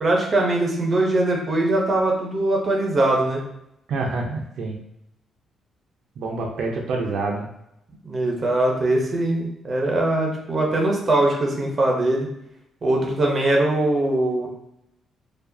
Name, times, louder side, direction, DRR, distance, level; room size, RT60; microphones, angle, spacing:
voice 1, 0.0-3.4 8.0-12.3 12.8-14.5, right 2 dB, 25° right, -1 dB, 0.8 m, -21 dB
voice 2, 3.9-4.7 6.2-7.5, right 3 dB, 65° right, 0 dB, 0.6 m, -27 dB
4.6 x 2.4 x 2.7 m, 0.79 s
cardioid pair, 165°, 0 cm